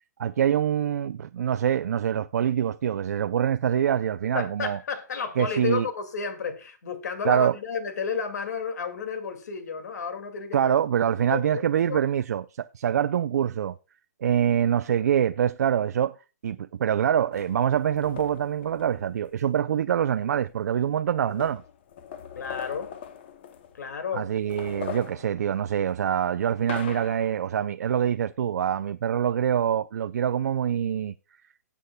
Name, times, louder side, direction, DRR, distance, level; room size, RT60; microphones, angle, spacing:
voice 1, 0.2-4.8 5.4-5.9 7.2-7.6 10.5-13.7 14.2-16.2 16.4-21.6 24.1-31.1, right 9 dB, 70° right, 0.4 m, -25 dB
voice 2, 4.3-10.7 11.3-12.0 22.4-22.9 23.8-24.3, left 5 dB, 75° left, 2.1 m, -32 dB
sound 1, 17.3-19.5 20.5-20.6 20.8-24.0 24.3-27.5, left 9 dB, 40° left, 0.7 m, -41 dB
18.5 x 8.2 x 2.2 m
hypercardioid pair, 175°, 9 cm